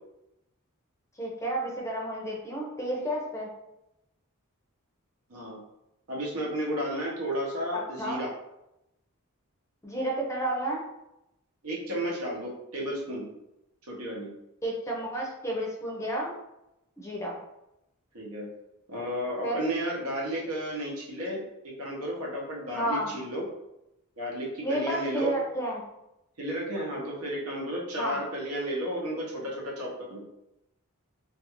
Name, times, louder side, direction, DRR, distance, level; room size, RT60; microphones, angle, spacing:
voice 1, 1.2-3.5 7.7-8.2 9.8-10.8 14.6-16.3 17.0-17.4 19.4-19.6 22.7-23.1 24.6-25.8 28.0-28.2, right 1 dB, 15° left, -2 dB, 0.5 m, -31 dB
voice 2, 6.1-8.3 11.6-13.2 13.9-14.3 18.1-18.5 18.9-21.4 21.8-23.5 24.2-25.3 26.4-30.2, equal, 90° right, -3 dB, 0.9 m, -32 dB
2.5 x 2.3 x 2.9 m, 0.88 s
head